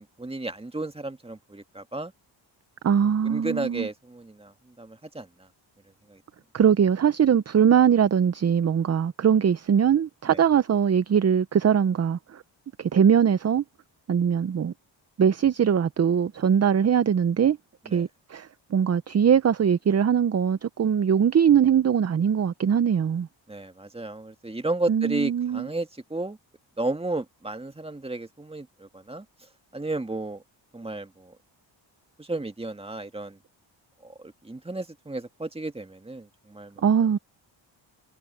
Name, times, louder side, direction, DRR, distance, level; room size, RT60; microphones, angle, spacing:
voice 1, 0.0-2.1 3.2-5.5 6.1-6.2 10.3-10.4 17.9-18.0 23.5-26.4 26.8-29.3 29.7-30.4 30.7-31.4 32.2-33.4 34.0-36.8, right 2 dB, 10° right, 2.0 m, -33 dB
voice 2, 2.8-3.9 6.5-12.4 12.8-13.6 14.1-14.7 15.2-17.6 17.8-23.3 24.9-25.7 36.8-37.2, right 8 dB, 35° right, 0.7 m, -21 dB
cardioid pair, 85°, 46 cm